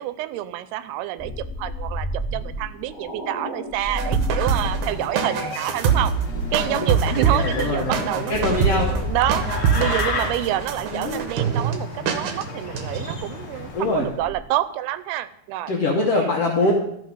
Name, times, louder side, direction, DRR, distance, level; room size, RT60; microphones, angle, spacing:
voice 1, 0.0-6.1 6.5-9.5 9.7-15.7 16.1-16.3, right 14 dB, 90° right, 14 dB, 2.6 m, -28 dB
sound 1, 1.2-5.4 5.9-6.8 7.5-11.6 13.9-14.4, equal, 5° left, 0.4 m, -31 dB
sound 2, 3.9-11.8 12.1-12.4 12.7-13.2, right 6 dB, 75° right, 1.8 m, -24 dB
sound 3, 4.4-14.1, left 2 dB, 50° left, 1.5 m, -34 dB
voice 2, 7.2-8.0 8.3-9.0 10.9-11.2 13.7-14.1 15.7-16.7, left 2 dB, 75° left, -1 dB, 1.4 m, -23 dB
13.0 x 5.6 x 5.4 m, 0.75 s
omnidirectional pair, 4.4 m